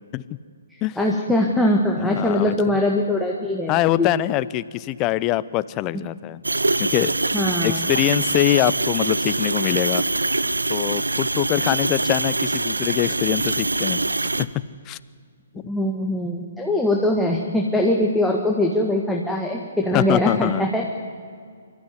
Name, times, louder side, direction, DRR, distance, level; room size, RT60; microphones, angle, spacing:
voice 1, 0.7-4.1 7.3-7.8 15.7-20.8, left 1 dB, ahead, -1 dB, 1.7 m, -22 dB
voice 2, 2.0-2.5 3.7-6.4 6.8-7.1 7.6-10.0 10.7-14.5 14.9-15.0 15.5-15.6 19.9-20.7, left 15 dB, 25° left, 18 dB, 0.6 m, -23 dB
sound 1, 6.4-14.4, right 2 dB, 85° right, 0.7 m, -24 dB
25.0 x 13.5 x 9.7 m, 2.2 s
figure-of-eight pair, 130°, 0 cm